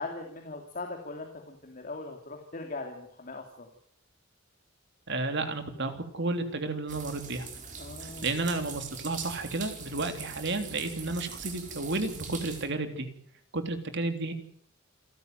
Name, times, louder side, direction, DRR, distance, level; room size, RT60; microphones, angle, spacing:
voice 1, 0.0-3.7 7.8-8.3, left 3 dB, 45° left, 2 dB, 3.1 m, -40 dB
voice 2, 5.1-7.5 8.0-13.1 13.5-14.3, right 2 dB, 60° right, 8 dB, 3.2 m, -32 dB
sound 1, 6.9-12.7, right 5 dB, 40° right, 4.9 m, -42 dB
28.5 x 13.5 x 9.3 m, 0.65 s
head